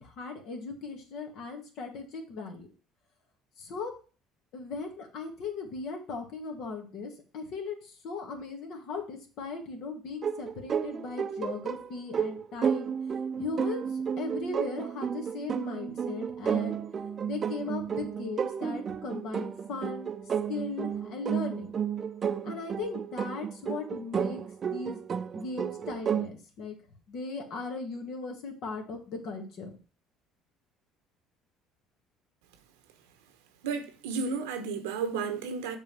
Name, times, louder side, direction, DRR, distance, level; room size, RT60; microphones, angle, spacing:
voice 1, 0.0-2.7 3.6-3.9 4.5-12.9 13.4-13.8 14.2-16.8 17.2-20.1 20.5-21.7 22.4-25.0 25.3-26.8 27.1-29.7, left 4 dB, 65° left, 2.0 m, -38 dB
sound 1, 10.2-26.3, right 7 dB, 45° right, 0.6 m, -32 dB
voice 2, 33.6-35.8, right 5 dB, 90° right, 1.0 m, -32 dB
6.8 x 3.8 x 6.1 m
supercardioid pair, 75°, 0 cm